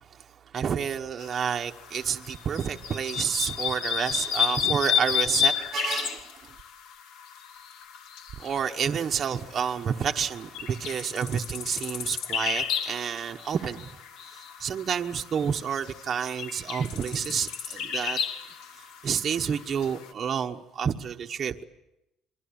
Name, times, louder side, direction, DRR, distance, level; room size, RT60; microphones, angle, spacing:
voice 1, 0.5-6.3 8.4-13.9 14.6-18.2 19.0-21.6, right 7 dB, 35° right, 1.1 m, -29 dB
sound 1, 1.2-20.1, left 8 dB, 75° left, 2.4 m, -33 dB
28.0 x 23.0 x 8.7 m
cardioid pair, 165°, 0 cm